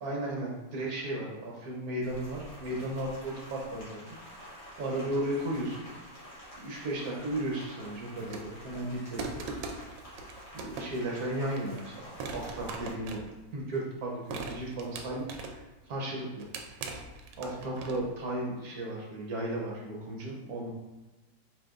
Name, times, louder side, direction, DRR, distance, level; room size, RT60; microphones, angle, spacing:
voice 1, 0.0-4.0 4.3-5.9 6.6-9.9 10.5-13.2 13.5-15.5 15.9-16.5 17.4-20.7, right 1 dB, 60° right, -2 dB, 1.1 m, -35 dB
Rain, 2.0-12.9, equal, 60° left, 2.1 m, -49 dB
sound 1, 8.2-8.7 9.2-11.1 11.6-11.8 12.2-13.8 14.3-15.7 16.2-18.2, right 3 dB, 80° right, 1.3 m, -41 dB
4.9 x 3.9 x 2.4 m, 1.1 s
omnidirectional pair, 2.1 m